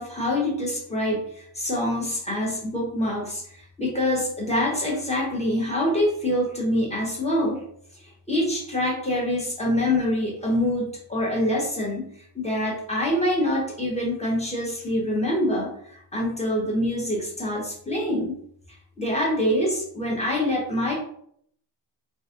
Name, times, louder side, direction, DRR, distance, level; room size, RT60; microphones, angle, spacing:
voice 1, 0.0-7.6 7.9-18.4 18.7-20.9, left 1 dB, 15° left, -3 dB, 1.1 m, -25 dB
3.0 x 2.6 x 2.5 m, 0.65 s
wide cardioid pair, 90°, 43 cm